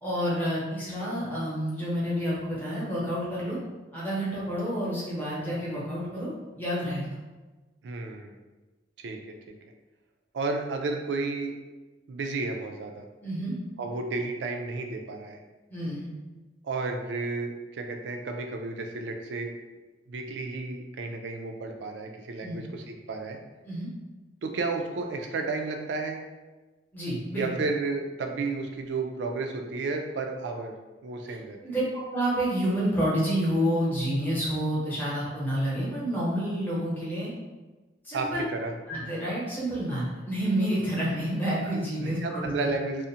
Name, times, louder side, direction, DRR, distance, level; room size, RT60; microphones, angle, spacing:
voice 1, 0.0-3.6 3.9-7.0 13.2-13.5 15.7-16.1 22.4-22.7 23.6-23.9 26.9-27.5 31.6-37.3 38.0-38.4 38.9-42.7, equal, 10° left, -8 dB, 0.8 m, -29 dB
voice 2, 7.8-8.4 9.0-9.2 10.3-11.5 12.1-13.0 13.8-15.4 16.6-19.5 20.1-23.4 24.4-26.2 27.3-30.7 31.0-31.6 38.1-38.7 42.0-43.1, right 3 dB, 80° right, 3 dB, 0.4 m, -32 dB
2.4 x 2.1 x 2.7 m, 1.2 s
head